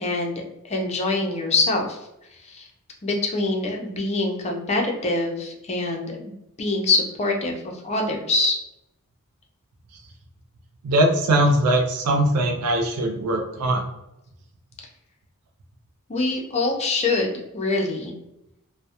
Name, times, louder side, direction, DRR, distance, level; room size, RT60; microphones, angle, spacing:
voice 1, 0.0-2.0 2.4-2.7 3.0-8.6 16.1-18.1, left 2 dB, 30° left, 1 dB, 0.4 m, -25 dB
voice 2, 10.8-13.8, right 1 dB, 85° right, 2 dB, 0.4 m, -21 dB
2.2 x 2.0 x 2.7 m, 0.86 s
head